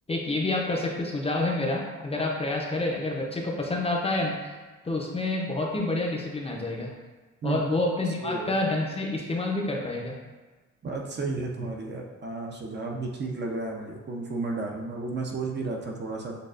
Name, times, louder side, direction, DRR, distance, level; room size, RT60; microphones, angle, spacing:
voice 1, 0.1-4.6 4.8-6.9 7.4-10.2, left 2 dB, 20° left, -1 dB, 0.6 m, -28 dB
voice 2, 8.1-8.5 10.8-16.4, right 3 dB, 35° right, 0 dB, 0.6 m, -33 dB
6.5 x 2.3 x 2.5 m, 1.3 s
cardioid pair, 90°, 30 cm